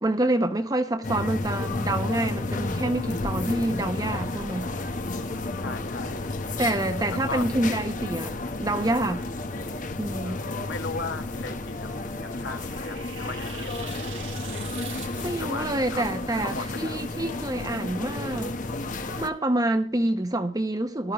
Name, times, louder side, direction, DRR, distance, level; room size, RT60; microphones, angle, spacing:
voice 1, 0.0-4.7 6.6-8.3 8.6-9.2 10.0-10.4 15.2-18.6 19.2-21.1, right 1 dB, 20° right, 1.0 m, -27 dB
sound 1, 1.0-19.3, left 2 dB, 40° left, 1.1 m, -32 dB
voice 2, 5.6-6.3 7.1-7.5 9.0-9.2 10.2-14.1 15.4-17.1, left 3 dB, 60° left, 1.6 m, -37 dB
sound 2, 11.6-15.8, right 10 dB, 75° right, 1.4 m, -44 dB
17.5 x 12.5 x 3.1 m
head